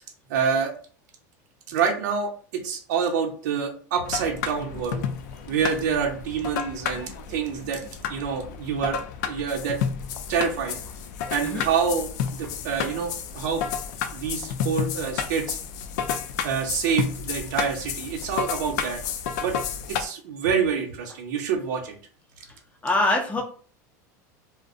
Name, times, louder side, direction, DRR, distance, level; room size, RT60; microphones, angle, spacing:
voice 1, 0.3-0.7 1.7-5.0 5.5-7.8 8.1-9.0 9.2-9.8 10.3-10.8 11.3-13.6 14.1-15.6 16.4-19.0 19.4-19.5 19.9-22.0, right 6 dB, 80° right, 2 dB, 0.7 m, -27 dB
sound 1, 4.0-20.0, left 7 dB, 80° left, 0.4 m, -31 dB
voice 2, 22.8-23.4, left 2 dB, 15° left, 1 dB, 0.5 m, -23 dB
2.5 x 2.0 x 2.5 m, 0.42 s
supercardioid pair, 140°, 9 cm